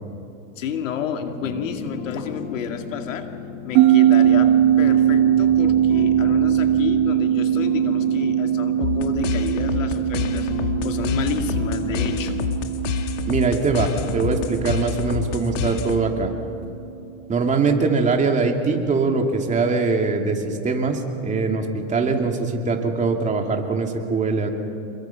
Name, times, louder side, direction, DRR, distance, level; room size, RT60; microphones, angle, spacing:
voice 1, 0.6-3.3 3.6-12.4 12.8-12.9, left 7 dB, 85° left, 5 dB, 2.4 m, -30 dB
sound 1, 1.4-12.6, left 7 dB, 40° left, 2.2 m, -35 dB
sound 2, 3.7-16.5, right 11 dB, 50° right, 1.2 m, -21 dB
sound 3, 8.8-16.2, left 6 dB, 70° left, 1.9 m, -28 dB
voice 2, 13.2-16.3 17.3-24.5, right 4 dB, 20° right, 3 dB, 2.7 m, -22 dB
27.5 x 22.5 x 6.0 m, 2.6 s
supercardioid pair, 125°, 38 cm